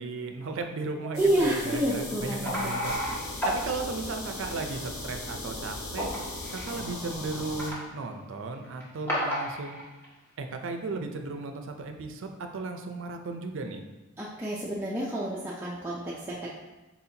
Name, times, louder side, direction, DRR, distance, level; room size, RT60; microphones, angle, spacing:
voice 1, 0.0-3.0 3.4-6.1 6.5-9.8 10.4-13.8, right 3 dB, 65° right, 5 dB, 0.5 m, -35 dB
sound 1, 1.1-7.7, left 2 dB, 85° left, 0.8 m, -38 dB
voice 2, 1.1-2.7 14.2-16.5, right 1 dB, 10° right, -7 dB, 0.4 m, -29 dB
sound 2, 2.5-3.5 3.8-4.0 4.4-4.5 6.0-6.7 7.1-7.7 8.6-8.8 9.1-10.1, equal, 10° left, 1.0 m, -31 dB
4.2 x 4.2 x 2.8 m, 1.1 s
head